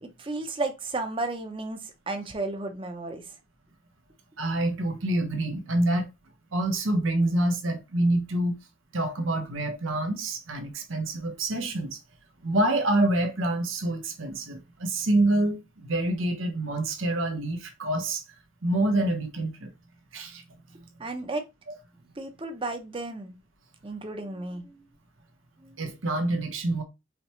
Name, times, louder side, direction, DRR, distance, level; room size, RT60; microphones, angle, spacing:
voice 1, 0.0-3.2 21.0-21.4 22.2-23.3 23.8-24.8 25.6-25.8, right 2 dB, 25° right, 0.7 m, -33 dB
voice 2, 4.4-6.1 6.5-8.6 8.9-12.0 12.4-18.2 18.6-19.7 20.1-20.4 21.7-21.8 25.8-26.8, right 1 dB, 85° right, 1.0 m, -26 dB
5.1 x 2.9 x 3.1 m
head